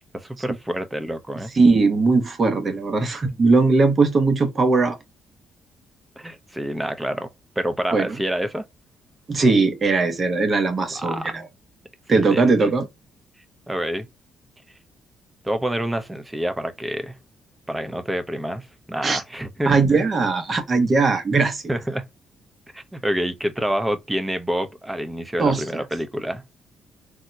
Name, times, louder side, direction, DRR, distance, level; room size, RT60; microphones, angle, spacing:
voice 1, 0.1-1.5 6.2-7.3 7.6-8.6 10.9-11.3 12.2-12.4 13.7-14.1 15.4-17.2 17.7-19.7 21.7-22.1 22.7-26.4, right 1 dB, 10° right, 0.6 m, -27 dB
voice 2, 1.6-5.0 7.9-8.1 9.3-11.5 12.1-12.9 19.0-19.2 19.7-21.6 25.4-25.6, right 3 dB, 40° right, 0.9 m, -19 dB
3.5 x 2.1 x 2.7 m
cardioid pair, 90°, 0 cm